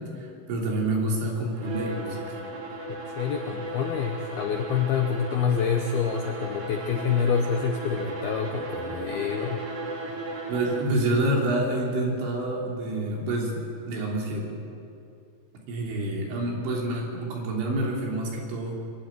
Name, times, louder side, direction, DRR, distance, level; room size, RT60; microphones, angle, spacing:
voice 1, 0.2-2.2 10.5-13.6 13.9-14.5 15.7-18.8, right 1 dB, 70° right, -2 dB, 5.4 m, -27 dB
Bowed string instrument, 1.5-11.0, right 2 dB, 45° right, 2.2 m, -36 dB
voice 2, 2.9-9.6, left 7 dB, 75° left, 4 dB, 2.3 m, -27 dB
23.0 x 12.0 x 9.4 m, 2.5 s
omnidirectional pair, 5.7 m